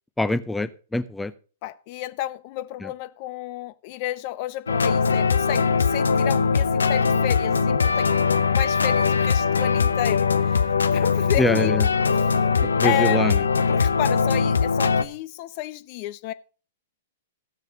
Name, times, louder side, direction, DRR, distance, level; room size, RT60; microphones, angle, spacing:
voice 1, 0.2-1.3 2.8-2.9 11.4-11.8 12.8-13.3, left 2 dB, 5° left, 0.6 m, -24 dB
voice 2, 1.6-12.4 12.8-13.3 13.7-16.3, left 15 dB, 45° left, 0.7 m, -31 dB
Guitar jam im Am (Ableton live), 4.7-15.0, left 5 dB, 80° left, 0.8 m, -21 dB
14.5 x 6.7 x 5.2 m
figure-of-eight pair, 110°, 0 cm